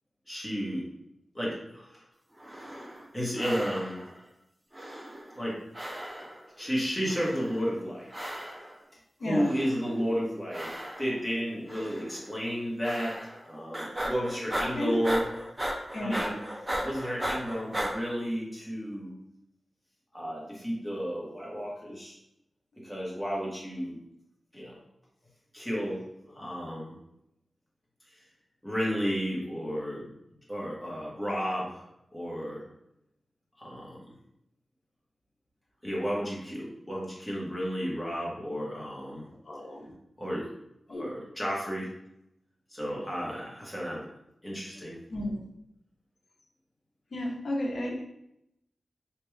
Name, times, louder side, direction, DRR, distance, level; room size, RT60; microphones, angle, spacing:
voice 1, 0.3-0.8 1.3-2.0 3.1-4.0 5.3-5.6 6.6-8.1 9.2-10.7 11.0-13.2 13.4-15.2 16.0-16.4 16.8-19.2 20.1-22.2 22.8-24.0 24.5-24.8 25.5-26.9 28.6-30.1 30.5-31.8 32.1-32.6 33.6-34.0 35.8-39.3 40.2-40.5 40.9-41.9 42.7-44.1 44.4-45.0, equal, 5° left, -5 dB, 1.0 m, -32 dB
sound 1, 2.4-3.1 3.4-4.2 4.7-5.5 5.7-6.5 7.1-7.7 8.1-8.8 9.4-10.0 10.5-11.3 11.7-12.2 12.8-13.5 13.7-17.9, equal, 15° right, 0.4 m, -36 dB
voice 2, 9.2-9.5 14.7-15.0 15.9-16.2 39.5-39.9 40.9-41.1 45.1-45.4 47.1-48.0, left 1 dB, 65° left, -1 dB, 0.7 m, -32 dB
3.4 x 2.2 x 3.1 m, 0.81 s
wide cardioid pair, 135°, 0 cm